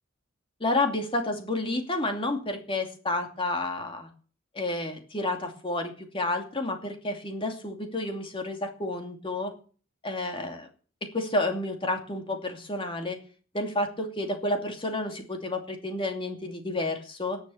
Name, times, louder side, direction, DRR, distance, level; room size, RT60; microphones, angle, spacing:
voice 1, 0.6-4.1 4.5-9.5 10.0-10.7 11.1-13.2 13.5-17.4, left 2 dB, 25° left, 4 dB, 2.7 m, -30 dB
18.5 x 7.2 x 7.2 m, 0.41 s
head